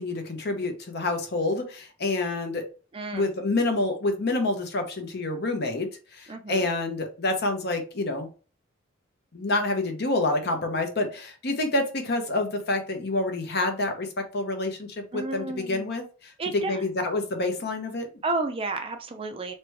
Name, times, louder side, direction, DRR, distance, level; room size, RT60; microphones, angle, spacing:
voice 1, 0.0-2.6 3.1-8.3 9.3-18.1, left 2 dB, 50° left, 5 dB, 0.9 m, -28 dB
voice 2, 2.9-3.3 6.3-6.7 15.1-15.9 16.4-16.8 18.2-19.5, right 3 dB, 25° right, 5 dB, 0.5 m, -31 dB
3.2 x 3.0 x 4.6 m, 0.36 s
head